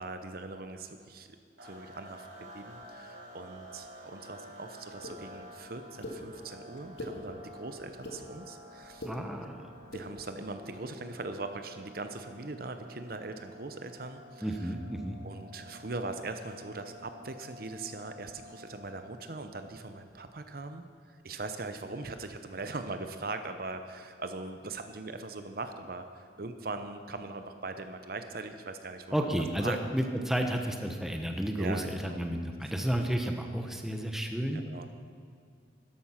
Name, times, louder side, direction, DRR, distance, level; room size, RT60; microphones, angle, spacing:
voice 1, 0.0-1.4 1.6-9.1 9.9-14.7 15.2-20.8 21.2-29.8 30.6-30.8 31.6-32.2 34.5-34.9, right 3 dB, 55° right, 8 dB, 0.8 m, -41 dB
sound 1, 1.6-19.4, left 1 dB, 80° right, 3.5 m, -51 dB
sound 2, 5.0-5.1 6.0-6.2 6.8-7.1 7.8-8.2 8.8-9.1 9.8-10.0, left 1 dB, 80° left, 2.2 m, -40 dB
voice 2, 9.1-9.7 14.4-15.2 29.1-34.6, right 1 dB, ahead, 4 dB, 1.0 m, -32 dB
13.0 x 11.5 x 5.8 m, 2.3 s
head